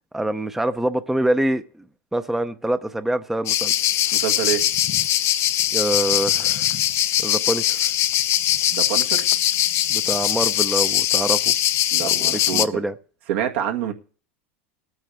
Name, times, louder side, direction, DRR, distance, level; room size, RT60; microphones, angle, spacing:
voice 1, 0.1-1.6 2.1-3.7 5.7-6.7 7.2-7.9 9.9-11.5 12.0-12.9, right 1 dB, 5° right, 0.7 m, -25 dB
sound 1, 3.5-12.7, left 12 dB, 45° left, 0.6 m, -21 dB
voice 2, 4.1-4.6 8.7-9.3 11.9-12.8 13.3-13.9, right 10 dB, 75° right, 1.8 m, -26 dB
19.0 x 9.2 x 3.5 m
supercardioid pair, 115°, 7 cm